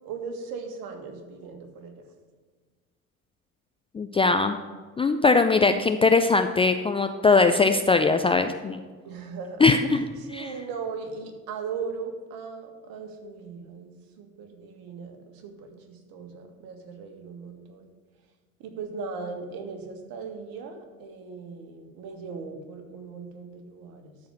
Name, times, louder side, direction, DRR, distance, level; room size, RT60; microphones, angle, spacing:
voice 1, 0.0-1.9 9.0-9.7 10.2-17.9 18.6-24.2, right 5 dB, 50° right, 5 dB, 1.9 m, -38 dB
voice 2, 3.9-4.6 5.0-8.8 9.6-10.1 10.3-10.5, left 4 dB, 15° left, 7 dB, 0.4 m, -21 dB
13.0 x 4.8 x 7.4 m, 1.5 s
figure-of-eight pair, 60°, 44 cm